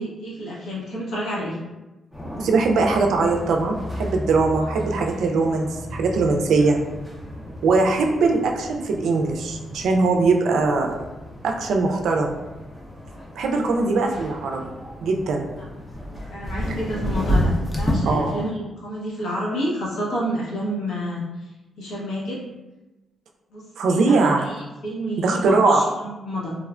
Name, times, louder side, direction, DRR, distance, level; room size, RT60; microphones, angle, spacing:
voice 1, 0.0-1.6 6.6-6.7 15.6-15.7 16.3-21.5 21.8-22.4 23.5-26.5, equal, 85° left, -7 dB, 0.9 m, -29 dB
sound 1, 2.1-18.5, equal, 10° left, 0.5 m, -31 dB
voice 2, 2.4-6.8 7.6-10.9 11.4-12.4 13.4-14.7 15.0-15.5 18.1-18.4 23.8-24.5 25.2-25.8, right 3 dB, 80° right, 2 dB, 0.3 m, -21 dB
3.1 x 2.1 x 2.4 m, 1.1 s
cardioid pair, 145°, 0 cm